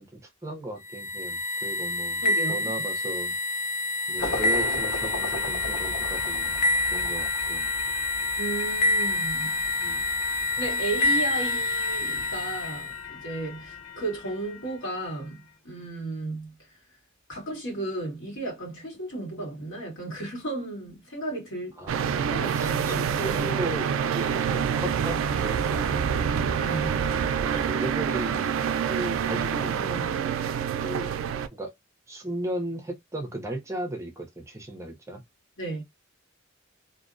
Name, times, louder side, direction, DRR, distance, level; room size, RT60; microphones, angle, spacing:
voice 1, 0.0-2.2 2.5-3.3 4.1-6.5 6.9-7.7 9.8-10.1 21.8-26.3 27.4-28.6 28.9-30.2 30.8-31.1 31.5-31.7 32.1-35.2, right 1 dB, 15° right, 0.6 m, -36 dB
sound 1, 0.9-13.0, left 2 dB, 40° left, 0.4 m, -28 dB
voice 2, 2.2-2.7 8.4-9.6 10.6-16.5 17.3-21.8 22.3-23.1 26.6-27.0 35.6-35.8, right 2 dB, 70° left, 1.4 m, -34 dB
sound 2, 4.2-15.3, left 6 dB, 90° left, 0.7 m, -35 dB
sound 3, 21.9-31.5, right 7 dB, 85° right, 0.3 m, -27 dB
2.6 x 2.0 x 2.5 m
head